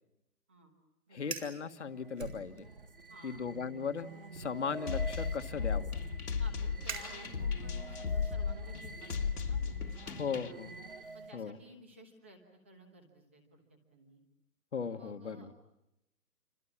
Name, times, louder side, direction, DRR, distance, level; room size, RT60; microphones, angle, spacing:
voice 1, 1.1-2.7 3.2-5.9 10.2-10.7 11.3-11.6 14.7-15.5, left 6 dB, 45° left, 9 dB, 1.6 m, -37 dB
Fire, 1.2-1.6 2.2-3.0 3.3-3.7 4.3-7.7, right 5 dB, 50° right, 4.8 m, -46 dB
sound 1, 1.8-11.5, right 3 dB, 35° right, 1.0 m, -49 dB
voice 2, 3.1-3.4 4.6-4.7 6.4-10.6 11.1-14.2 15.0-15.5, right 1 dB, 10° right, 4 dB, 1.2 m, -56 dB
sound 2, 4.9-10.5, left 6 dB, 65° left, 1.9 m, -35 dB
29.0 x 25.0 x 7.3 m, 0.90 s
hypercardioid pair, 175°, 48 cm